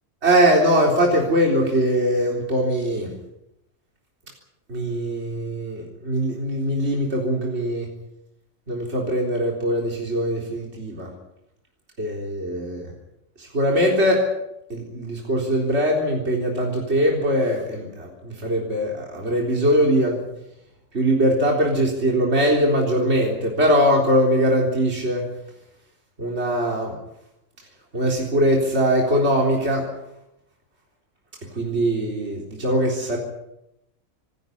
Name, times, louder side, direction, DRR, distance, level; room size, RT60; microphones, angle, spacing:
voice 1, 0.2-3.1 4.7-7.9 8.7-11.1 12.0-12.9 13.4-14.3 14.7-20.2 20.9-25.2 26.2-26.9 27.9-29.9 31.5-33.2, equal, 50° right, 0 dB, 4.1 m, -21 dB
26.0 x 13.5 x 9.8 m, 0.86 s
omnidirectional pair, 1.4 m